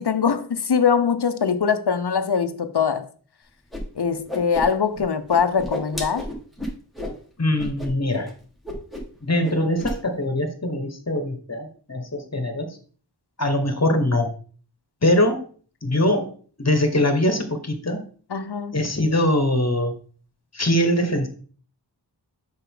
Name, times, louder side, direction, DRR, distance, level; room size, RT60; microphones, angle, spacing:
voice 1, 0.0-3.0 4.0-6.3 18.3-18.8, left 6 dB, 70° left, 0.8 m, -22 dB
Whoosh swoosh swish, 3.7-3.8 4.1-5.0 5.3-7.2 7.6-7.9 8.1-8.3 8.6-9.2 9.4-10.0, left 1 dB, ahead, 2.0 m, -31 dB
voice 2, 7.4-8.3 9.2-12.8 13.4-14.3 15.0-15.5 15.8-16.3 16.6-18.1 18.7-19.9 20.5-21.3, left 1 dB, 40° left, 1.4 m, -22 dB
6.7 x 5.4 x 3.8 m
wide cardioid pair, 45°, 42 cm